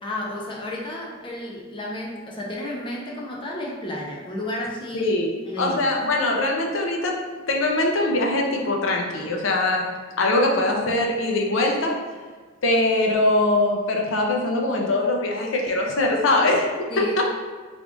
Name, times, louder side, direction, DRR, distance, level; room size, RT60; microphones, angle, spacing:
voice 1, 0.0-5.1 5.5-5.8 16.9-17.2, left 1 dB, 25° left, -3 dB, 0.5 m, -32 dB
voice 2, 4.9-5.3 5.6-7.1 7.5-11.9 12.6-17.2, left 2 dB, 70° left, 0 dB, 0.6 m, -22 dB
3.5 x 2.4 x 3.7 m, 1.5 s
head